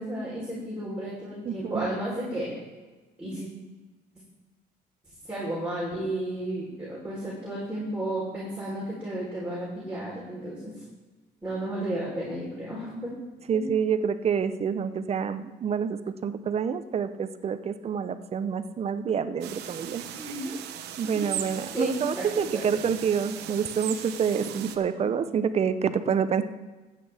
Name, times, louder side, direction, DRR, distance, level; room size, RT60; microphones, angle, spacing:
voice 1, 0.0-2.6 3.2-3.5 5.2-10.7 11.4-13.1 13.5-13.6 20.2-20.6 21.1-21.3 21.7-22.8 24.9-25.1, right 1 dB, 5° right, -8 dB, 3.7 m, -33 dB
voice 2, 1.4-1.9 13.5-20.3 21.0-26.4, right 7 dB, 40° right, 11 dB, 0.7 m, -27 dB
sound 1, 19.4-24.8, right 10 dB, 80° right, 0.9 m, -38 dB
15.0 x 8.5 x 3.4 m, 1.2 s
cardioid pair, 110°, 17 cm